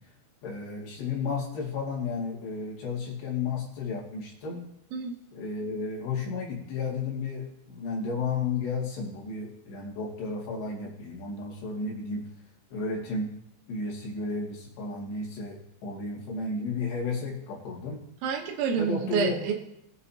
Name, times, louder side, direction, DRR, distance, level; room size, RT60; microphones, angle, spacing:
voice 1, 0.4-4.6 5.3-12.3 12.7-13.3 13.7-18.0 18.8-19.5, left 4 dB, 65° left, -3 dB, 4.2 m, -33 dB
voice 2, 18.2-19.5, right 6 dB, 75° right, 3 dB, 3.4 m, -28 dB
21.0 x 8.1 x 2.8 m, 0.78 s
omnidirectional pair, 5.6 m